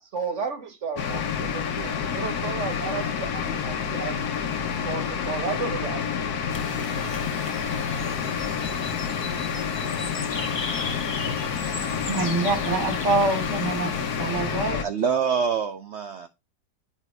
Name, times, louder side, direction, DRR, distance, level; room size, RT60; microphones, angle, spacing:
voice 1, 0.0-4.2 4.8-6.0, right 5 dB, 45° right, 1.5 m, -33 dB
sound 1, 1.0-14.8, left 7 dB, 65° left, 1.4 m, -28 dB
sound 2, 6.5-14.6, left 3 dB, 35° left, 0.5 m, -37 dB
voice 2, 12.1-13.9 14.2-14.8, right 3 dB, 70° right, 2.7 m, -25 dB
voice 3, 14.8-16.3, right 6 dB, 85° right, 0.6 m, -25 dB
8.4 x 3.4 x 4.7 m
omnidirectional pair, 1.8 m